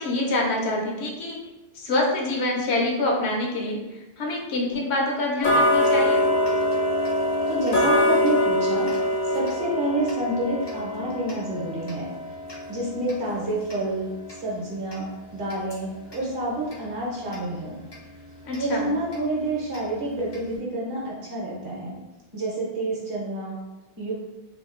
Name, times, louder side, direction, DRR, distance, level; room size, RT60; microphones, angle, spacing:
voice 1, 0.0-1.4 1.7-6.2 18.4-18.9, left 2 dB, 90° left, -1 dB, 0.9 m, -26 dB
Tick-tock, 5.4-16.3 16.7-16.8 17.3-17.4 17.9-18.0 18.5-18.6 19.1-19.2 19.7-19.8 20.3-20.4, left 1 dB, 40° left, 0.4 m, -25 dB
voice 2, 7.5-8.9 9.2-12.1 12.7-15.1 15.3-17.8 18.6-22.0 22.3-23.6 24.0-24.1, right 1 dB, 55° right, -5 dB, 1.0 m, -28 dB
2.7 x 2.5 x 2.4 m, 1.0 s
omnidirectional pair, 1.1 m